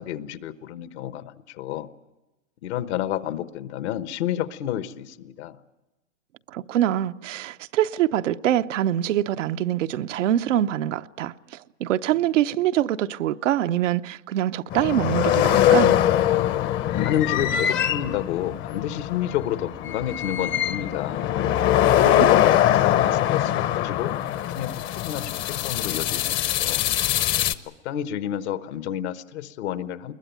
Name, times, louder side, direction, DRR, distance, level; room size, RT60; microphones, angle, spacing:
voice 1, 0.0-1.9 2.6-5.6 16.9-21.2 22.0-26.8 27.6-30.1, left 11 dB, 65° left, 1.3 m, -30 dB
voice 2, 6.5-11.3 11.8-15.9 22.0-22.3, right 12 dB, 85° right, 0.8 m, -24 dB
sound 1, 14.7-27.5, left 11 dB, 35° left, 0.8 m, -22 dB
21.5 x 21.0 x 9.2 m
hypercardioid pair, 130°, 36 cm